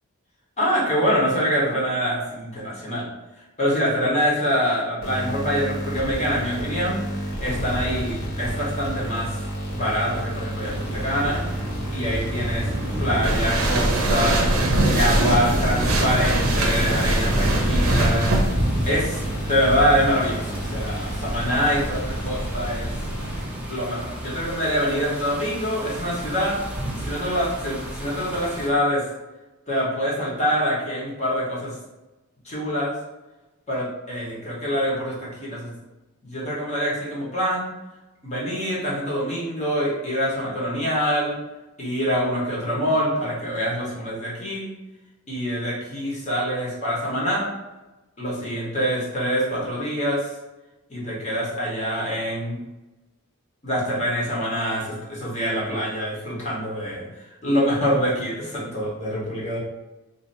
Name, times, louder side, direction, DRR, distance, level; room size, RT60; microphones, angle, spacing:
voice 1, 0.6-3.0 3.6-7.0 7.4-9.4 9.7-11.4 11.9-12.7 13.0-14.5 14.9-18.4 18.9-22.9 23.7-26.6 27.0-29.0 29.7-31.7 32.4-32.9 33.7-35.7 36.2-37.7 38.2-41.3 41.8-44.7 45.3-47.5 48.2-50.3 50.9-52.6 53.6-59.6, equal, 30° left, -5 dB, 1.2 m, -25 dB
sound 1, 5.0-23.8, right 1 dB, 50° left, 1.3 m, -31 dB
sound 2, 10.6-28.7, equal, 5° right, 0.6 m, -29 dB
sound 3, 13.2-18.5, right 1 dB, 70° right, 0.7 m, -22 dB
2.8 x 2.6 x 4.1 m, 1.0 s
head